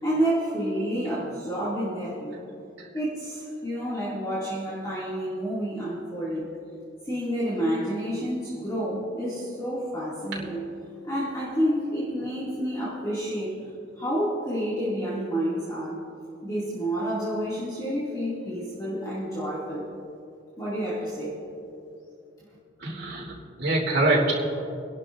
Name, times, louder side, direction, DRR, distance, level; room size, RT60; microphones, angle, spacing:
voice 1, 0.0-2.4 2.9-6.5 7.0-10.7 11.0-13.6 14.0-16.0 16.4-19.9 20.6-21.4, equal, 20° left, -9 dB, 2.3 m, -29 dB
voice 2, 22.8-24.3, right 2 dB, 60° right, -5 dB, 3.2 m, -24 dB
26.0 x 11.5 x 2.6 m, 2.7 s
head